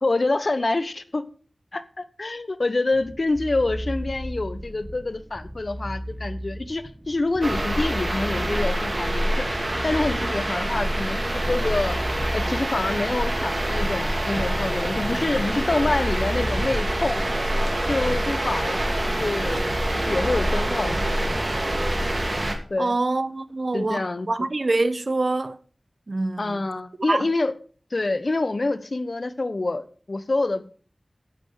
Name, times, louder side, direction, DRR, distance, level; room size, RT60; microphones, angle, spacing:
voice 1, 0.0-1.2 1.7-9.5 9.8-12.0 12.3-17.2 17.9-19.7 19.9-21.4 22.7-22.9 23.7-24.5 26.4-27.5 27.9-30.7, left 2 dB, 60° left, 1.2 m, -26 dB
sound 1, 2.9-22.3, equal, 15° right, 1.4 m, -35 dB
sound 2, 7.4-22.6, right 1 dB, 35° right, 2.7 m, -26 dB
voice 2, 22.8-25.6 26.1-26.6 27.1-27.3, right 2 dB, 60° right, 1.0 m, -25 dB
10.5 x 8.2 x 6.5 m
wide cardioid pair, 45°, 0 cm